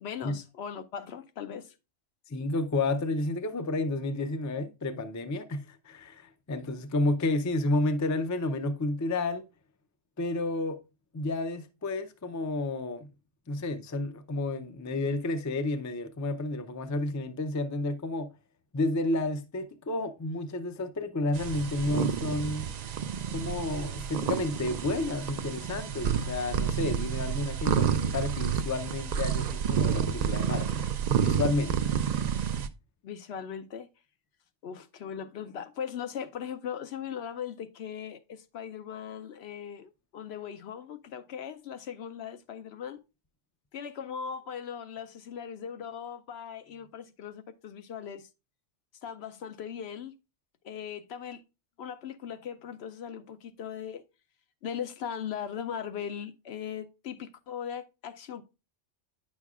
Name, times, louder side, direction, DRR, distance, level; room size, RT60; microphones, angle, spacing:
voice 1, 0.0-1.8 33.0-33.9 34.6-43.0 43.7-48.3 49.0-50.1 50.6-51.4 51.8-54.0 54.6-58.4, left 8 dB, 70° left, 0.8 m, -39 dB
voice 2, 2.3-9.4 10.2-10.8 11.1-13.1 13.5-18.3 18.7-22.7 23.3-30.8 31.2-31.9, left 2 dB, 25° left, 0.4 m, -31 dB
sound 1, 21.3-32.7, right 8 dB, 65° right, 0.4 m, -29 dB
9.0 x 6.3 x 2.3 m
omnidirectional pair, 1.2 m